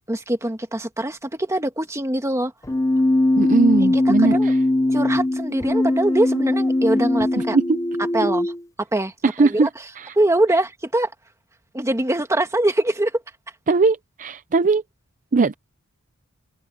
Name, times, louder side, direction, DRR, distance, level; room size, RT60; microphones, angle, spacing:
voice 1, 0.1-2.5 3.9-4.5 4.9-7.6 8.1-8.5 8.8-9.1 9.4-9.7 10.2-11.1 11.7-13.1, right 1 dB, 15° right, 1.9 m, -23 dB
Keyboard (musical), 2.6-8.6, left 1 dB, 15° left, 0.8 m, -20 dB
voice 2, 3.4-4.6 7.4-7.8 9.2-9.7 10.0-10.1 13.7-14.8 15.3-15.5, right 3 dB, 35° right, 0.5 m, -19 dB
open air
head